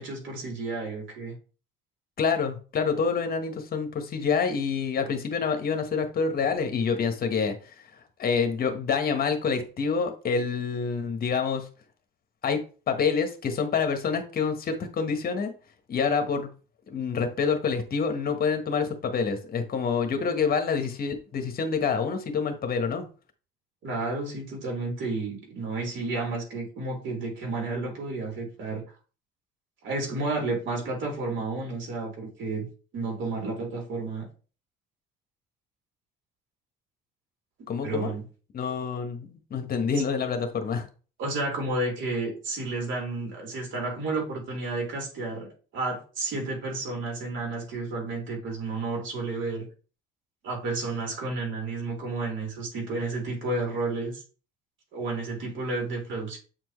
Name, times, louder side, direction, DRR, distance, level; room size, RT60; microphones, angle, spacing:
voice 1, 0.0-1.3 23.8-28.8 29.8-32.7 32.9-34.3 37.8-38.2 41.2-49.7 50.4-54.2 54.9-56.4, right 3 dB, 70° right, 3.5 m, -31 dB
voice 2, 2.2-7.7 8.2-11.7 12.4-12.6 12.9-15.5 15.9-16.5 16.9-23.1 37.7-38.1 38.5-40.9, left 5 dB, 45° left, 1.3 m, -27 dB
7.9 x 4.5 x 3.2 m
cardioid pair, 105°, 20 cm